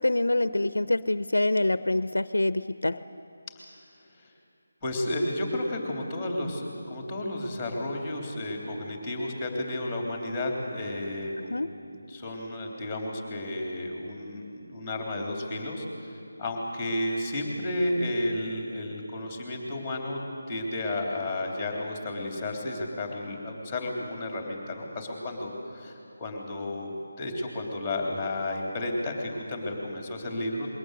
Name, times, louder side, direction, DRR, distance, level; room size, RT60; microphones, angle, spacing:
voice 1, 0.0-3.0 11.4-11.7, left 2 dB, 85° left, 15 dB, 0.5 m, -26 dB
voice 2, 4.8-20.2 20.5-30.7, left 1 dB, 10° left, 1 dB, 3.4 m, -32 dB
21.5 x 17.5 x 7.9 m, 2.6 s
figure-of-eight pair, 165°, 0 cm